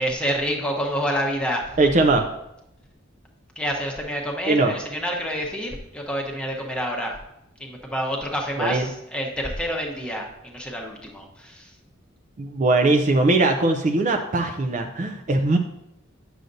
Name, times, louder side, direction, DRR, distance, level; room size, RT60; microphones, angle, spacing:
voice 1, 0.0-1.6 3.6-7.1 7.6-11.6, equal, 5° left, -1 dB, 1.0 m, -28 dB
voice 2, 1.8-2.3 4.5-4.7 8.6-8.9 12.4-15.6, right 2 dB, 40° right, 4 dB, 0.5 m, -20 dB
9.1 x 6.4 x 2.6 m, 0.83 s
head